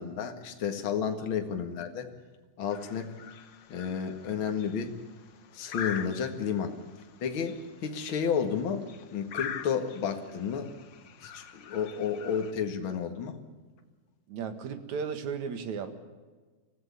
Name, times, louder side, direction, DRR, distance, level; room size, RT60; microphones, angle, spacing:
voice 1, 0.0-2.1 2.6-3.1 3.7-4.9 5.5-6.8 7.2-10.7 11.2-13.4, left 7 dB, 45° left, 6 dB, 2.4 m, -31 dB
sound 1, 2.7-12.5, left 8 dB, 70° left, 1.1 m, -44 dB
voice 2, 14.3-15.9, right 6 dB, 65° right, 9 dB, 3.1 m, -35 dB
25.0 x 15.5 x 8.4 m, 1.3 s
omnidirectional pair, 3.6 m